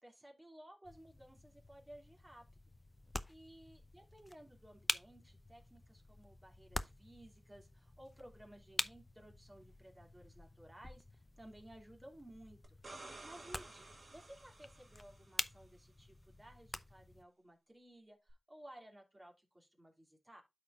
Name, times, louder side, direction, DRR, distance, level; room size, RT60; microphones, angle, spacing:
voice 1, 0.0-2.4 3.3-12.6 13.0-20.4, right 1 dB, 20° right, 2.5 m, -58 dB
sound 1, 0.8-17.2, left 1 dB, 25° left, 0.7 m, -47 dB
sound 2, 12.6-15.5 18.3-18.4, right 2 dB, 70° right, 2.0 m, -54 dB
12.5 x 4.5 x 2.4 m
wide cardioid pair, 65°, 0 cm